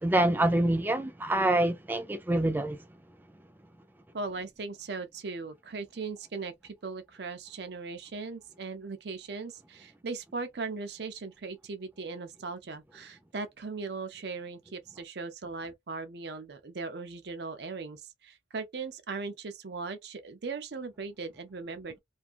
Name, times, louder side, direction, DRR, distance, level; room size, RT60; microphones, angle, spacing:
voice 1, 0.0-2.8, right 1 dB, 10° right, 0.4 m, -26 dB
voice 2, 4.1-22.0, right 4 dB, 60° right, 0.6 m, -39 dB
2.6 x 2.4 x 2.5 m
head